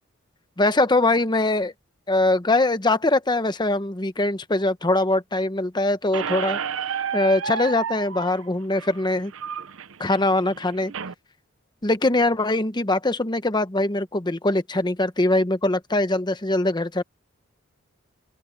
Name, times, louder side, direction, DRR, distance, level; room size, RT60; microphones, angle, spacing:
voice 1, 0.6-1.7 2.1-6.6 7.1-9.3 10.0-10.9 11.8-17.0, left 2 dB, 20° left, 1.0 m, -22 dB
Squeak, 6.1-11.1, right 7 dB, 70° right, 0.7 m, -31 dB
open air
head